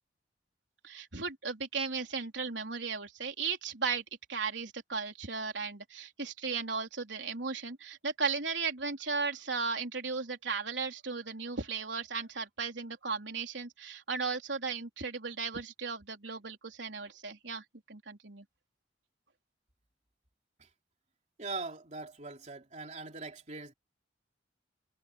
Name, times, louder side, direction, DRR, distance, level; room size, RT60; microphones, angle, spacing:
voice 1, 0.8-4.0 4.3-18.4, right 5 dB, 80° right, 3.8 m, -36 dB
voice 2, 21.4-23.7, right 3 dB, 40° right, 3.4 m, -41 dB
head